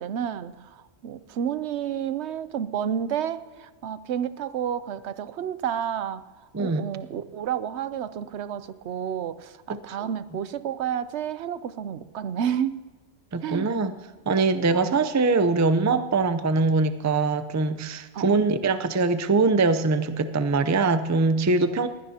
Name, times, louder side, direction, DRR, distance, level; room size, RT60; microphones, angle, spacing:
voice 1, 0.0-6.2 6.6-12.8 13.4-13.7 14.7-15.1 18.1-18.5, right 9 dB, 75° right, 14 dB, 0.9 m, -30 dB
voice 2, 13.3-13.9 14.3-21.9, right 3 dB, 25° right, 10 dB, 0.4 m, -22 dB
20.5 x 16.5 x 2.8 m, 1.3 s
omnidirectional pair, 1.2 m